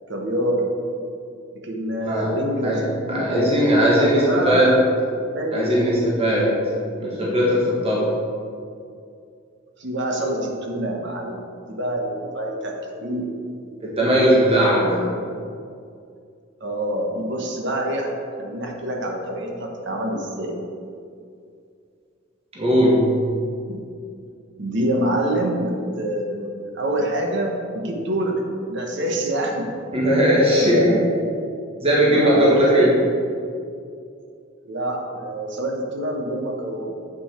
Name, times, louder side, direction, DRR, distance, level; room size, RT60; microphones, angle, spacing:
voice 1, 0.1-0.7 1.5-4.7 5.3-5.9 9.8-12.7 13.0-13.3 16.6-18.1 18.4-20.5 23.7-23.8 24.6-28.4 28.7-29.7 30.5-31.3 32.0-32.9 34.6-37.0, right 1 dB, 60° right, 1 dB, 1.1 m, -26 dB
voice 2, 3.1-4.8 5.5-6.6 7.0-8.1 13.8-15.0 22.5-23.2 29.9-30.9 31.8-32.9, equal, 30° right, -6 dB, 1.4 m, -18 dB
8.0 x 5.7 x 4.4 m, 2.4 s
head